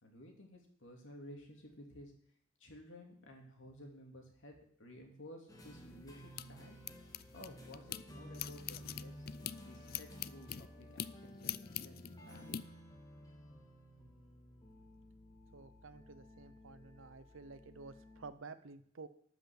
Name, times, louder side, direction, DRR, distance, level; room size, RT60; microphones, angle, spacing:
voice 1, 0.0-2.1 2.6-6.8 7.3-9.3 9.6-12.6, left 1 dB, 65° left, 2 dB, 2.6 m, -54 dB
sound 1, 5.5-18.3, equal, 20° left, 1.7 m, -54 dB
sound 2, 5.7-8.0 8.3-12.6, left 11 dB, 45° left, 0.3 m, -45 dB
voice 2, 15.5-19.1, right 4 dB, 75° right, 12 dB, 0.8 m, -52 dB
12.5 x 5.9 x 7.2 m, 0.64 s
head